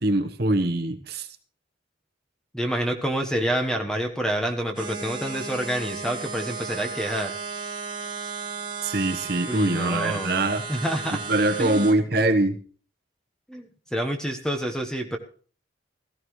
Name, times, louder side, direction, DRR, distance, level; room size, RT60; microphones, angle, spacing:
voice 1, 0.0-1.3 8.8-10.6 11.3-12.6, right 2 dB, 50° right, 7 dB, 1.2 m, -23 dB
voice 2, 2.5-7.3 9.5-11.2 11.6-11.9 13.5-15.2, right 1 dB, 5° left, 3 dB, 1.2 m, -28 dB
sound 1, 4.7-11.9, right 5 dB, 25° right, 1.6 m, -35 dB
16.5 x 14.0 x 3.2 m, 0.42 s
head